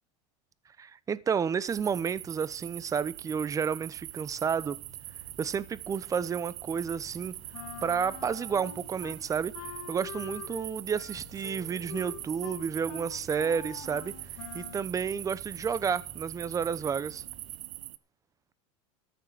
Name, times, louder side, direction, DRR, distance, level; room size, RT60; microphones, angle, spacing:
voice 1, 0.8-4.8 5.4-7.3 7.8-9.5 9.9-14.1 14.5-17.2, right 6 dB, 20° right, 0.8 m, -31 dB
sound 1, 1.7-18.0, right 16 dB, 85° right, 0.6 m, -42 dB
sound 2, 3.8-17.6, left 6 dB, ahead, 2.4 m, -55 dB
Wind instrument woodwind instrument, 7.5-9.2 9.5-14.9, left 10 dB, 80° left, 2.1 m, -45 dB
14.0 x 6.7 x 7.9 m
supercardioid pair, 120°, 15 cm